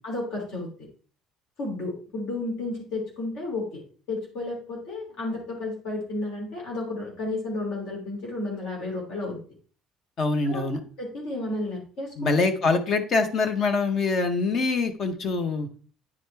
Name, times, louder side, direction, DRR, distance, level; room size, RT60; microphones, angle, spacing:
voice 1, 0.0-0.7 1.6-3.8 4.1-9.4 10.4-10.6 11.0-12.4, left 2 dB, 60° left, -2 dB, 2.9 m, -32 dB
voice 2, 10.2-10.8 12.2-15.7, left 3 dB, 35° left, 9 dB, 0.8 m, -24 dB
9.4 x 5.0 x 3.3 m, 0.41 s
cardioid pair, 170°, 0 cm